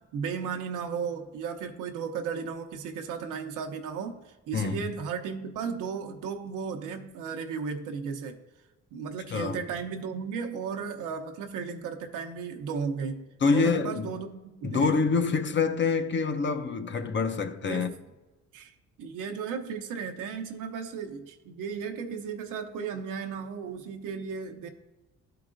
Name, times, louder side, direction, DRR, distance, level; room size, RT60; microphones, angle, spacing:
voice 1, 0.0-8.4 8.9-14.9 17.6-18.0 18.5-18.7 19.0-24.7, right 6 dB, 85° right, 0.7 m, -35 dB
voice 2, 4.5-4.8 9.3-9.6 13.4-14.1 14.6-17.9, left 4 dB, 40° left, 0.7 m, -26 dB
11.5 x 4.8 x 2.5 m
cardioid pair, 90°, 30 cm